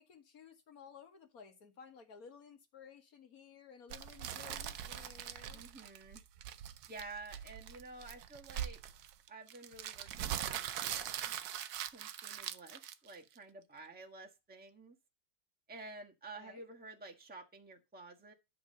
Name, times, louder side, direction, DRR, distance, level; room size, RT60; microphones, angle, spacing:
voice 1, 0.0-5.6 16.3-16.7, left 6 dB, 60° left, 1.9 m, -56 dB
sound 1, 3.9-13.4, right 10 dB, 70° right, 1.2 m, -42 dB
voice 2, 5.5-6.2 6.9-8.8 9.3-11.4 11.9-15.0 15.7-18.3, right 3 dB, 5° right, 1.3 m, -51 dB
11.0 x 3.8 x 6.4 m
omnidirectional pair, 1.8 m